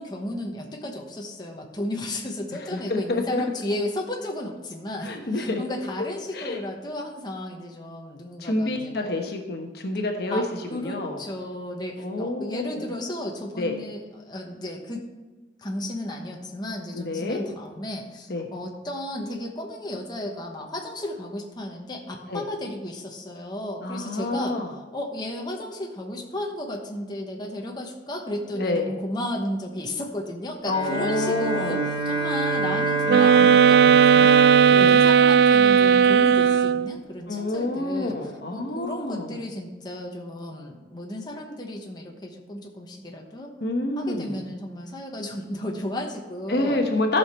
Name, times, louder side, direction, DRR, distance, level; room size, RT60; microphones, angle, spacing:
voice 1, 0.0-9.1 10.3-15.0 15.6-34.4 34.8-38.2 38.5-43.5 44.0-46.8, left 1 dB, 25° left, 0 dB, 1.1 m, -34 dB
voice 2, 2.7-3.4 5.0-5.6 6.3-6.6 8.4-10.4 10.7-11.2 12.0-12.9 13.6-13.7 16.9-17.4 18.3-18.5 22.3-22.4 23.8-24.7 28.5-28.9 30.7-31.9 34.7-35.0 37.3-39.4 43.6-44.4 46.5-47.2, left 2 dB, 60° left, 3 dB, 1.1 m, -28 dB
Bowed string instrument, 30.7-36.1, right 3 dB, 25° right, 1.4 m, -27 dB
sound 1, 33.1-37.0, right 8 dB, 60° right, 0.3 m, -16 dB
14.0 x 5.8 x 4.4 m, 1.2 s
head